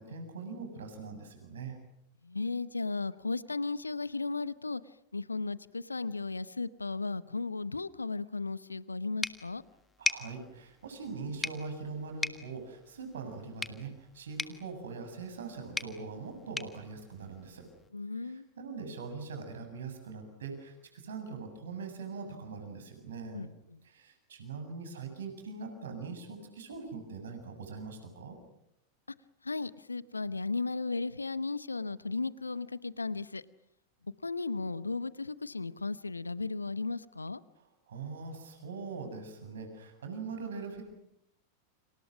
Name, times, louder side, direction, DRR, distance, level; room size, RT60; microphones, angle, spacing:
voice 1, 0.0-1.8 10.0-17.7 18.2-23.5 23.8-28.4 37.6-40.8, right 4 dB, 65° right, 6 dB, 7.5 m, -42 dB
voice 2, 2.2-4.8 5.1-9.6 17.9-18.5 23.3-23.8 29.4-33.4 34.2-37.4, left 3 dB, 80° left, 18 dB, 0.9 m, -35 dB
sound 1, 9.2-17.9, left 3 dB, 10° left, 1.6 m, -40 dB
30.0 x 27.0 x 6.3 m, 0.80 s
figure-of-eight pair, 90°, 0 cm